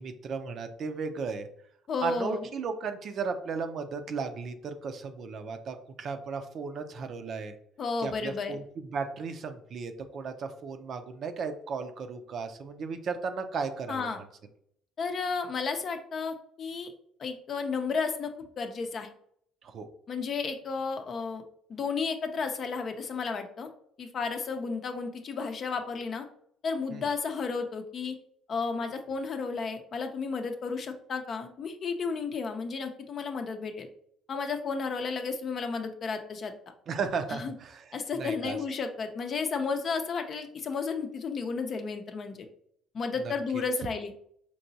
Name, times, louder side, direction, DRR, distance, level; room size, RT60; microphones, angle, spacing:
voice 1, 0.0-1.5 2.0-7.5 8.0-14.1 19.6-19.9 26.9-27.1 36.9-37.8 38.1-38.6 43.2-43.3, right 5 dB, 55° right, 7 dB, 0.5 m, -35 dB
voice 2, 1.9-2.5 7.8-8.6 13.9-14.2 15.0-16.9 17.2-18.3 18.6-19.1 20.1-21.4 21.7-23.7 24.0-26.3 26.6-28.2 28.5-33.9 34.3-36.5 37.3-37.5 37.9-42.5 42.9-44.1, left 5 dB, 50° left, 6 dB, 0.6 m, -32 dB
4.6 x 2.9 x 2.7 m, 0.67 s
hypercardioid pair, 60°, 0 cm